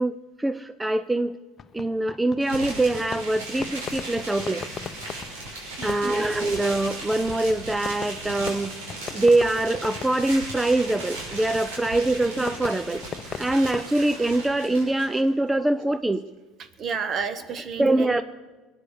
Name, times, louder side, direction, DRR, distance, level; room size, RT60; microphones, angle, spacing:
voice 1, 0.0-1.4 1.7-4.6 5.8-8.8 9.1-13.0 13.4-16.2 17.8-18.2, right 2 dB, 10° right, 12 dB, 0.5 m, -24 dB
Fireworks, 1.6-13.9, left 6 dB, 35° left, 0.7 m, -40 dB
sound 1, 2.4-15.2, right 2 dB, 90° right, 6.3 m, -37 dB
Whispering, 4.1-16.6, right 5 dB, 65° right, 1.4 m, -48 dB
voice 2, 5.8-6.2 16.6-18.2, right 6 dB, 45° right, 10 dB, 1.5 m, -32 dB
21.5 x 9.6 x 6.7 m, 1.3 s
supercardioid pair, 90°, 0 cm